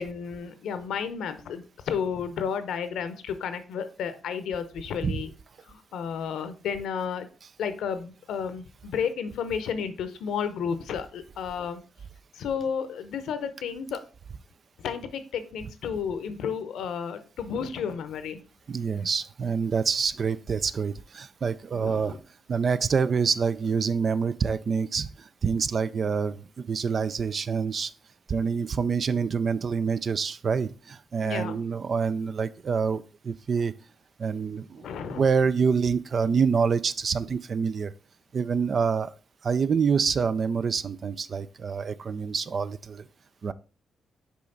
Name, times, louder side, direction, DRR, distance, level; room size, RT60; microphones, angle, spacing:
voice 1, 0.0-5.3 5.7-7.3 7.6-11.8 12.3-14.0 14.8-18.4 21.7-22.2 31.2-31.6 34.8-35.2, left 7 dB, 80° left, 11 dB, 0.7 m, -32 dB
voice 2, 18.7-22.2 22.5-27.9 28.3-33.7 34.2-37.9 38.3-39.1 39.4-43.1 43.4-43.5, right 5 dB, 55° right, 15 dB, 0.4 m, -26 dB
5.6 x 5.1 x 3.9 m, 0.35 s
supercardioid pair, 60°, 0 cm